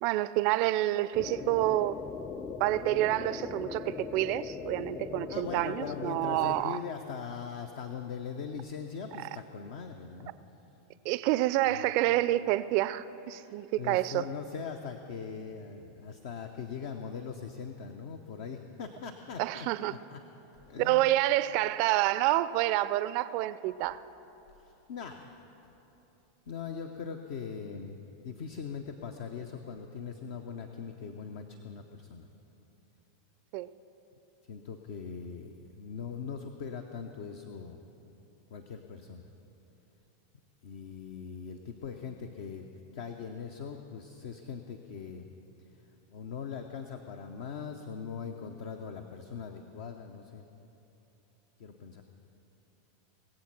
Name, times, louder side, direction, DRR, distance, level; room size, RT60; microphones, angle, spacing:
voice 1, 0.0-2.0 2.6-6.8 9.2-9.3 11.0-14.2 19.4-19.9 20.8-24.0 33.5-33.7, right 16 dB, 50° right, 16 dB, 0.4 m, -28 dB
sound 1, 1.1-6.6, left 5 dB, 25° left, 0.5 m, -40 dB
voice 2, 5.3-10.3 13.3-20.2 20.7-21.1 24.6-25.4 26.5-28.0 28.2-32.3 34.5-37.8 38.5-39.3 40.6-42.7 42.9-45.3 45.6-45.7 46.1-50.5 51.6-52.0, left 6 dB, 60° left, 5 dB, 0.7 m, -41 dB
19.5 x 7.8 x 6.0 m, 3.0 s
figure-of-eight pair, 90°, 0 cm